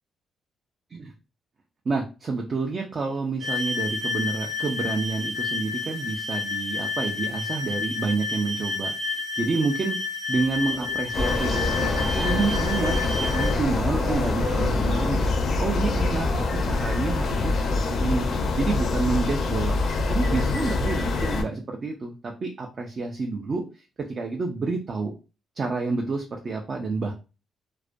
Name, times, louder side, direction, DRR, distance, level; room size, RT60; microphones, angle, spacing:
voice 1, 1.9-10.0 10.3-16.3 16.6-18.3 18.6-19.8 20.1-25.1 25.6-27.1, right 4 dB, 35° right, 1 dB, 0.3 m, -29 dB
sound 1, 3.4-13.6, left 4 dB, 85° right, 0.7 m, -30 dB
sound 2, 10.3-16.8, right 2 dB, 55° right, 0.7 m, -37 dB
sound 3, 11.1-21.4, left 3 dB, 55° left, 0.4 m, -25 dB
2.3 x 2.1 x 2.5 m, 0.31 s
cardioid pair, 145°, 0 cm